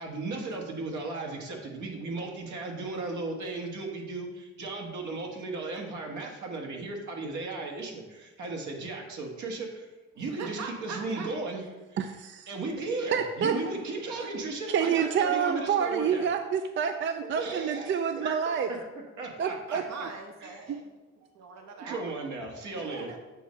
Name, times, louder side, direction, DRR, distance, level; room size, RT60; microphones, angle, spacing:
voice 1, 0.0-9.9 10.2-11.6 11.9-12.0 12.5-16.3 17.2-18.9 19.2-19.8 20.4-20.6 21.9-23.1, right 3 dB, 75° right, 1 dB, 1.5 m, -36 dB
voice 2, 10.4-11.3 19.7-20.9 21.3-22.2 22.7-23.2, right 5 dB, 60° right, 4 dB, 0.9 m, -41 dB
voice 3, 12.0-12.5 13.1-13.5 14.7-18.7 19.4-19.8 20.7-20.8, right 7 dB, 40° right, 7 dB, 0.4 m, -28 dB
7.6 x 3.2 x 5.2 m, 1.2 s
cardioid pair, 90°, 30 cm